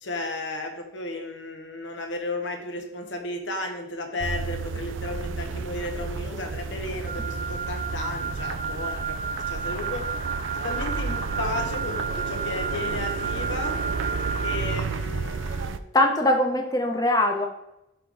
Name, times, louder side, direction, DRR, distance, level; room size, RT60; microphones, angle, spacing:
voice 1, 0.0-10.1 10.5-13.8 14.4-15.8, left 2 dB, 75° left, 4 dB, 1.2 m, -34 dB
sound 1, 4.2-15.8, right 4 dB, 90° right, 0.4 m, -32 dB
Wind instrument woodwind instrument, 7.1-14.8, right 4 dB, 40° right, 0.6 m, -32 dB
voice 2, 15.9-17.5, left 1 dB, 20° left, 3 dB, 0.9 m, -21 dB
11.5 x 3.8 x 3.5 m, 0.85 s
head